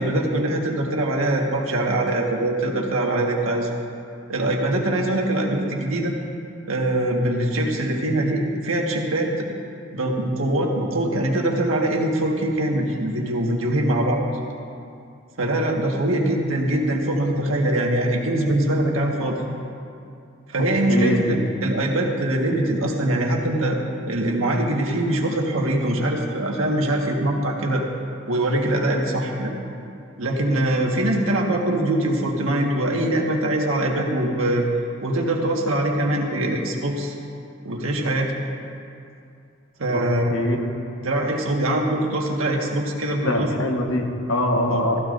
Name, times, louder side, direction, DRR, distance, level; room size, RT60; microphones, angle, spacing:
voice 1, 0.0-3.8 4.3-6.1 6.7-9.5 9.9-14.2 15.4-19.4 20.5-23.8 24.1-27.8 28.3-29.5 30.2-34.7 35.0-37.2 37.6-38.4 39.8-40.4 41.0-43.5 44.7-44.8, right 1 dB, 90° right, 0 dB, 1.6 m, -23 dB
voice 2, 20.9-21.3 39.9-40.0 40.3-40.6 43.2-45.0, left 1 dB, 80° left, 2 dB, 1.3 m, -23 dB
16.0 x 14.5 x 2.6 m, 2.5 s
head